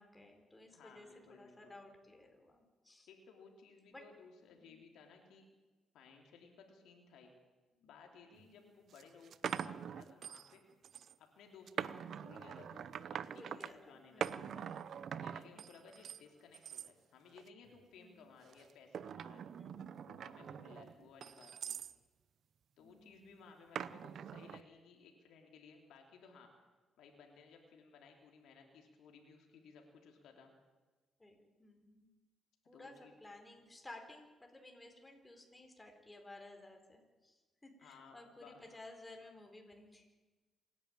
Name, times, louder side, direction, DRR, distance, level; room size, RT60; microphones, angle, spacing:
voice 1, 0.0-3.1 3.9-4.0 4.6-4.8 7.7-7.9 8.4-8.7 13.3-14.5 15.3-15.7 18.0-18.3 19.6-20.0 20.3-20.7 22.8-23.4 31.2-32.1 32.7-40.2, left 2 dB, 15° left, 3 dB, 4.4 m, -56 dB
voice 2, 0.7-1.8 3.1-5.4 5.9-7.3 7.8-10.6 11.2-14.7 15.1-19.4 20.1-21.8 22.8-26.5 27.0-30.5 32.7-33.1 37.8-38.6, left 5 dB, 80° left, 2 dB, 3.2 m, -59 dB
sound 1, 8.3-8.4 8.9-10.6 10.8-11.1 11.7-13.7 14.2-16.2 16.5-16.9 17.4-17.8 18.5-22.0 23.8-24.6, right 8 dB, 60° right, 0.7 m, -43 dB
27.0 x 11.0 x 9.0 m, 1.2 s
cardioid pair, 90°, 0 cm